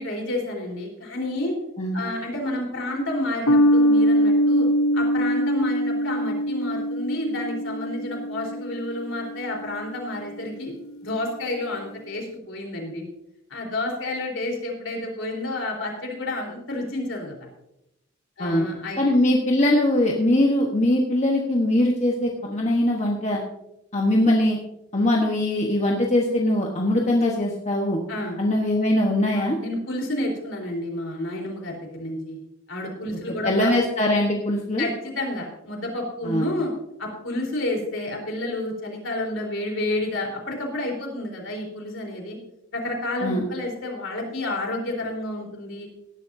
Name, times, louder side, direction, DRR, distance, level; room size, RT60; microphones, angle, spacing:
voice 1, 0.0-1.6 1.9-4.7 4.9-10.7 11.0-13.0 13.5-17.5 18.4-19.1 28.1-28.4 29.4-32.4 32.7-33.7 34.8-36.7 37.0-42.4 42.7-45.9, left 1 dB, 65° left, 1 dB, 4.0 m, -30 dB
sound 1, 3.5-10.2, equal, 85° left, 0.8 m, -23 dB
voice 2, 19.0-23.4 23.9-24.6 24.9-28.0 28.4-29.6 33.4-34.8 36.2-36.5 43.2-43.4, left 1 dB, 35° left, -1 dB, 1.2 m, -21 dB
17.5 x 11.5 x 2.7 m, 0.86 s
head